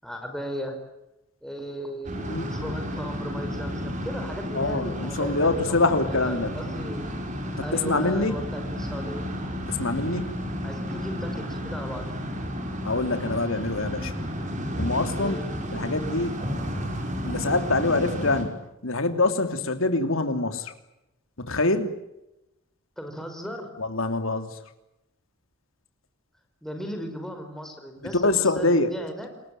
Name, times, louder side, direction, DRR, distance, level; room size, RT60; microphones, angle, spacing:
voice 1, 0.0-0.8 1.4-6.0 6.5-7.1 7.6-9.3 10.6-12.2 15.2-15.5 23.0-23.7 26.6-28.2 28.6-29.3, equal, ahead, 4 dB, 5.2 m, -36 dB
sound 1, 2.0-18.4, equal, 40° right, 5.7 m, -32 dB
voice 2, 2.1-2.5 4.5-6.5 7.6-8.4 9.7-10.4 12.8-14.1 14.8-15.4 15.7-16.4 17.2-18.6 18.8-20.7 21.4-21.9 23.8-24.6 28.2-28.9, left 2 dB, 90° left, 8 dB, 3.1 m, -25 dB
28.5 x 21.0 x 9.2 m, 0.91 s
head